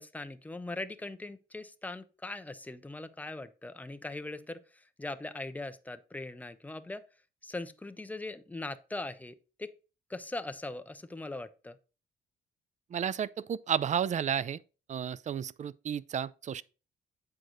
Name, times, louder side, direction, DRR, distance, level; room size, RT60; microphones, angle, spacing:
voice 1, 0.0-7.0 7.4-9.7 10.1-11.8, left 2 dB, 10° left, 0.6 m, -40 dB
voice 2, 12.9-14.6 14.9-16.6, right 8 dB, 40° right, 0.4 m, -32 dB
7.7 x 4.8 x 3.9 m
cardioid pair, 90°, 20 cm